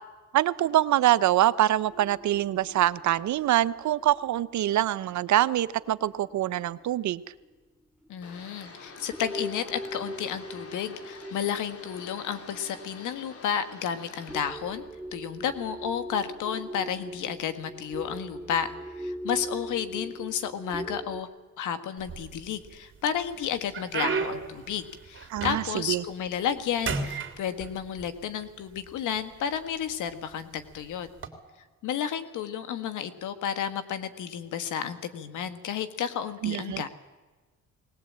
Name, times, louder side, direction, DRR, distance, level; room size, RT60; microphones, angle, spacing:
voice 1, 0.3-7.2 25.3-26.0 36.4-36.8, right 13 dB, 70° right, 15 dB, 0.8 m, -24 dB
sound 1, 1.9-5.8 6.3-6.4 7.4-7.5 8.1-8.2 8.6-8.8 9.1-21.2, equal, 5° right, 1.3 m, -41 dB
voice 2, 8.1-14.8 15.1-21.3 21.6-31.1 31.8-36.9, left 8 dB, 85° left, 10 dB, 1.7 m, -32 dB
sound 2, 8.2-14.4, left 3 dB, 50° left, 3.4 m, -47 dB
sound 3, 22.0-22.7 23.2-26.0 26.3-26.6 26.8-28.1 28.9-29.0 29.7-29.9 31.1-31.3, right 5 dB, 40° right, 2.9 m, -33 dB
20.5 x 19.0 x 8.7 m, 1.3 s
cardioid pair, 90°, 30 cm